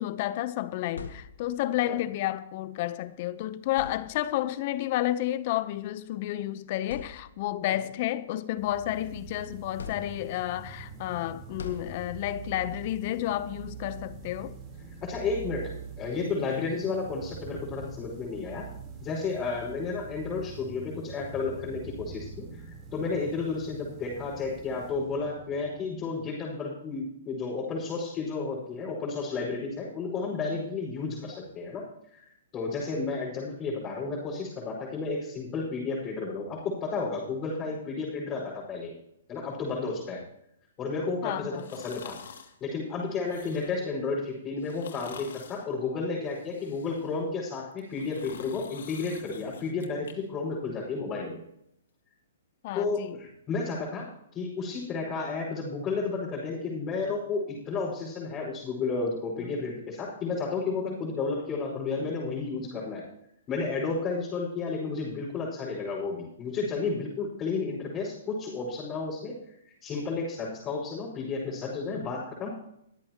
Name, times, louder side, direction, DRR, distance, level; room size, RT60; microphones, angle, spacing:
voice 1, 0.0-14.5 41.2-41.7 52.6-53.2 59.4-59.7, left 14 dB, 45° left, 0.8 m, -31 dB
sound 1, 0.6-1.8 3.0-3.2 3.7-4.5 5.6-5.8 6.3-6.4 6.8-7.7 8.2-9.2 9.8-10.6 11.6-12.5, left 5 dB, 85° left, 1.9 m, -44 dB
sound 2, 8.6-26.1, right 6 dB, 20° right, 3.9 m, -44 dB
voice 2, 15.0-18.7 19.0-22.6 22.9-31.9 32.1-32.2 32.5-38.9 39.3-40.2 40.8-42.2 42.6-51.4 52.7-63.0 63.5-69.3 69.8-72.5, left 4 dB, 25° left, 5.3 m, -32 dB
sound 3, 41.6-42.5 43.1-43.9 44.6-45.7 46.2-47.2 47.7-50.1 50.5-50.6, left 7 dB, 70° left, 2.1 m, -47 dB
23.5 x 8.6 x 3.0 m
hypercardioid pair, 145°, 0 cm